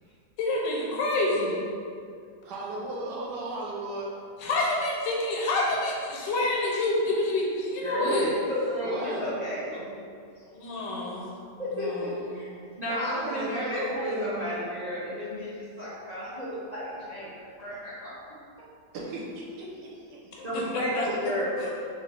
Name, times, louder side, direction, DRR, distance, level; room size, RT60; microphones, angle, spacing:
voice 1, 0.4-1.6 4.4-8.3 10.5-11.3 11.7-12.4 20.3-21.3, left 2 dB, 85° left, -3 dB, 1.3 m, -28 dB
voice 2, 2.5-4.1 8.8-9.4 12.8-14.4 18.9-20.5 20.9-21.2, right 2 dB, 75° right, -4 dB, 1.2 m, -36 dB
voice 3, 7.8-9.9 11.6-11.9 12.3-12.5 12.8-17.9 20.4-21.7, left 1 dB, 45° right, -10 dB, 0.5 m, -32 dB
3.7 x 2.6 x 3.2 m, 2.3 s
omnidirectional pair, 1.9 m